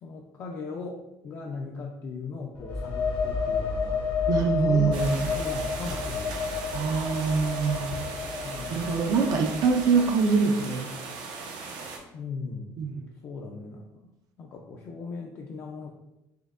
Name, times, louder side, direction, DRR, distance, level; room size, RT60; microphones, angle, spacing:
voice 1, 0.0-4.0 4.6-6.8 8.2-8.9 12.1-12.8 13.2-14.1 14.4-15.9, left 4 dB, 40° left, 0 dB, 0.3 m, -38 dB
sound 1, 2.5-10.1, left 5 dB, 80° left, 0.7 m, -31 dB
voice 2, 4.3-5.3 6.7-7.9 8.7-10.9 12.8-13.0, right 5 dB, 55° right, 3 dB, 0.4 m, -24 dB
sound 2, 4.9-12.0, right 4 dB, 90° right, 0.7 m, -38 dB
4.3 x 2.6 x 2.4 m, 0.92 s
cardioid pair, 165°, 7 cm